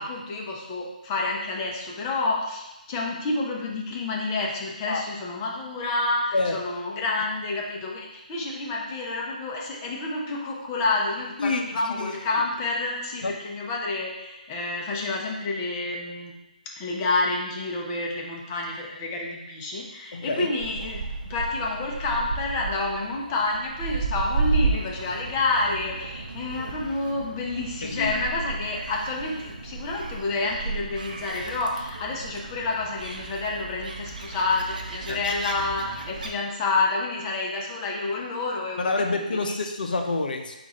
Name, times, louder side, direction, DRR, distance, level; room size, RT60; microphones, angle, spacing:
voice 1, 0.0-16.3 16.7-39.1 39.3-39.6, left 3 dB, 25° left, -2 dB, 0.8 m, -29 dB
voice 2, 20.1-20.5 27.8-28.1 35.1-35.2 38.8-40.6, left 3 dB, 75° left, 4 dB, 0.6 m, -27 dB
Gull seagull, 20.6-36.3, right 3 dB, 70° right, 0.6 m, -33 dB
4.5 x 2.5 x 4.3 m, 0.98 s
hypercardioid pair, 155°, 5 cm